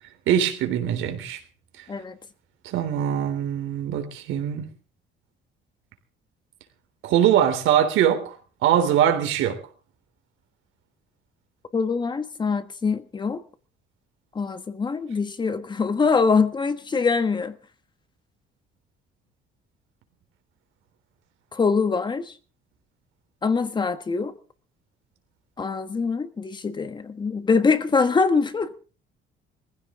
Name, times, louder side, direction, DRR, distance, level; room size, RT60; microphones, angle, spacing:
voice 1, 0.3-1.4 2.6-4.7 7.0-8.3 8.6-9.6, right 10 dB, 80° right, 3.5 m, -22 dB
voice 2, 11.7-13.4 14.3-17.5 21.5-22.3 23.4-24.3 25.6-28.7, left 4 dB, 20° left, 1.4 m, -23 dB
20.5 x 15.5 x 3.8 m
cardioid pair, 150°, 20 cm